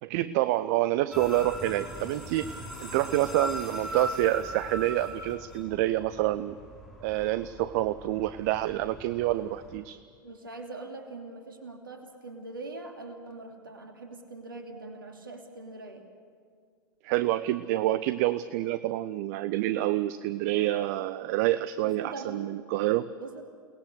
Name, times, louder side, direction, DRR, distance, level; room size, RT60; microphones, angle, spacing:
voice 1, 0.0-2.5 2.8-6.6 7.0-10.0 17.0-23.1, right 15 dB, 50° right, 15 dB, 0.6 m, -27 dB
sound 1, 1.1-9.8, equal, ahead, 7.1 m, -40 dB
voice 2, 10.2-16.1 21.8-22.5 23.2-23.4, right 3 dB, 80° right, 4 dB, 2.8 m, -42 dB
29.0 x 20.0 x 6.6 m, 2.1 s
figure-of-eight pair, 85°, 11 cm